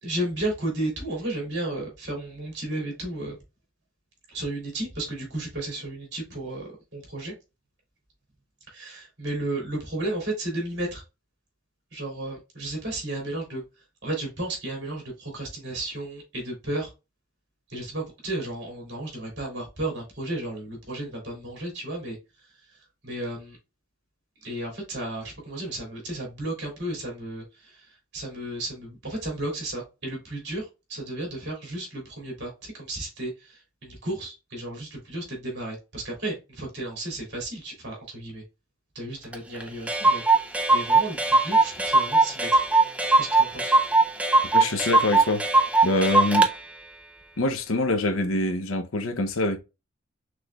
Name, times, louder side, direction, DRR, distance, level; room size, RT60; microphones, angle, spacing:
voice 1, 0.0-3.4 4.3-7.3 8.7-11.0 11.9-16.9 17.7-23.6 24.4-38.4 38.9-40.2 40.7-42.6 43.2-43.7, right 1 dB, 55° right, 2.7 m, -33 dB
Clock, 39.3-39.4 39.6-39.7 39.9-46.5, right 3 dB, 5° right, 0.4 m, -20 dB
voice 2, 44.5-45.4 45.8-46.5 47.4-49.6, left 2 dB, 85° left, 0.7 m, -25 dB
6.0 x 3.2 x 2.3 m
head